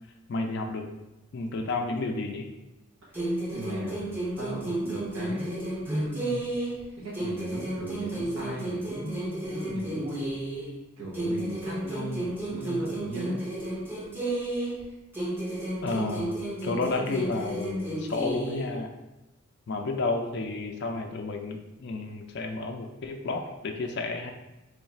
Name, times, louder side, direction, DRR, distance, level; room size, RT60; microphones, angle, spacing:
voice 1, 0.3-0.9 1.3-2.5 15.8-16.4 16.6-18.9 19.7-24.3, left 3 dB, 50° left, 3 dB, 0.4 m, -31 dB
sound 1, 3.1-6.8 7.1-10.8 11.1-14.8 15.1-18.8, right 1 dB, 10° right, 0.6 m, -32 dB
voice 2, 3.1-4.1 4.4-6.5 6.9-10.2 11.0-13.4, right 1 dB, 85° right, -6 dB, 1.0 m, -37 dB
3.1 x 2.4 x 4.2 m, 1.0 s
head